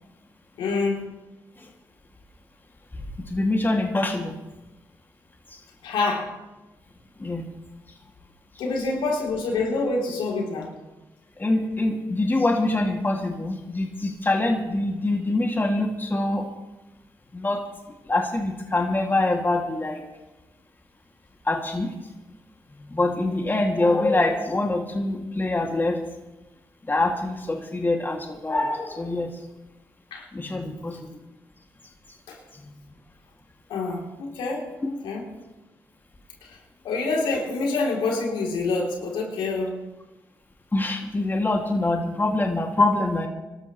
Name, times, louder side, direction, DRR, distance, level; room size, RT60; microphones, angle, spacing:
voice 1, 0.6-1.0 5.8-6.3 8.6-10.7 30.1-30.3 32.3-32.4 33.7-35.2 36.4-36.6 36.8-39.8, left 3 dB, 90° left, 0 dB, 3.3 m, -27 dB
voice 2, 3.3-4.4 7.2-7.5 11.4-16.5 17.3-17.6 18.1-20.0 21.5-21.9 22.9-26.0 26.9-29.3 30.3-31.0 40.7-43.3, left 2 dB, 25° left, 1 dB, 2.4 m, -24 dB
24.5 x 13.0 x 3.2 m, 1.1 s
cardioid pair, 65°, 8 cm